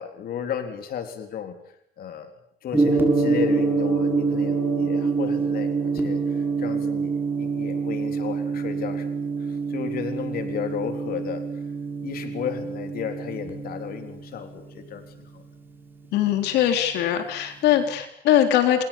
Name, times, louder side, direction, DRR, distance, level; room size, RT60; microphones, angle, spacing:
voice 1, 0.0-1.6 2.0-2.3 2.6-9.1 9.4-11.4 12.0-15.4, left 8 dB, 60° left, 6 dB, 3.8 m, -34 dB
Gong, 2.7-16.9, right 4 dB, 10° right, 6.6 m, -26 dB
voice 2, 16.1-18.8, left 11 dB, 85° left, 6 dB, 3.9 m, -21 dB
30.0 x 21.5 x 7.3 m, 0.69 s
cardioid pair, 110°, 17 cm